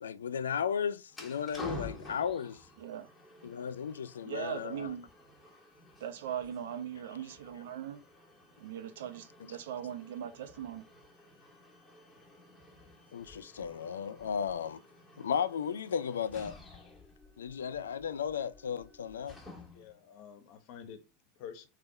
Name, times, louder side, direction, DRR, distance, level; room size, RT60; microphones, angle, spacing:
voice 1, 0.0-2.7 3.4-4.9 13.1-14.8 15.2-16.6 17.4-19.4, left 7 dB, 85° left, 0.3 m, -35 dB
sound 1, 1.1-20.0, left 1 dB, 10° left, 1.6 m, -51 dB
voice 2, 2.8-3.1 4.2-5.1 6.0-8.0 8.6-10.8, right 9 dB, 75° right, 0.7 m, -40 dB
voice 3, 19.7-21.7, left 8 dB, 55° left, 1.1 m, -49 dB
3.5 x 3.3 x 4.0 m
hypercardioid pair, 95°, 0 cm